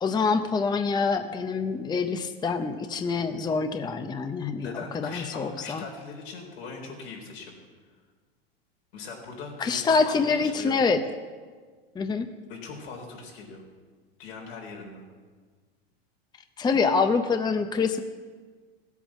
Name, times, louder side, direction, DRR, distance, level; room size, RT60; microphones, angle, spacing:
voice 1, 0.0-5.8 9.6-11.0 12.0-12.3 16.6-18.0, left 4 dB, 15° left, 8 dB, 0.7 m, -26 dB
voice 2, 4.6-7.6 8.9-10.1 10.4-10.8 12.5-13.6 14.2-15.0, left 4 dB, 80° left, 0 dB, 4.2 m, -40 dB
16.0 x 8.3 x 7.3 m, 1.5 s
supercardioid pair, 115°, 30 cm